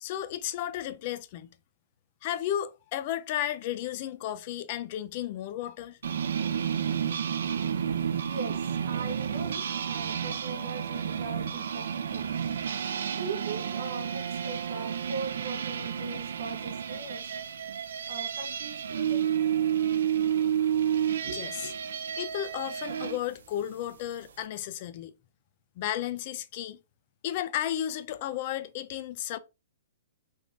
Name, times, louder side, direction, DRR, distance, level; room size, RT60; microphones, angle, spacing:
voice 1, 0.0-1.5 2.2-6.0 21.3-21.6 22.2-25.1 25.8-26.8 27.2-29.4, left 11 dB, 40° left, 0.4 m, -33 dB
sound 1, 6.0-23.2, right 8 dB, 75° right, 0.4 m, -31 dB
voice 2, 7.8-12.5 13.1-17.3 18.1-19.3 21.2-21.7, right 4 dB, 50° right, 1.3 m, -40 dB
3.4 x 3.1 x 2.6 m
hypercardioid pair, 155°, 0 cm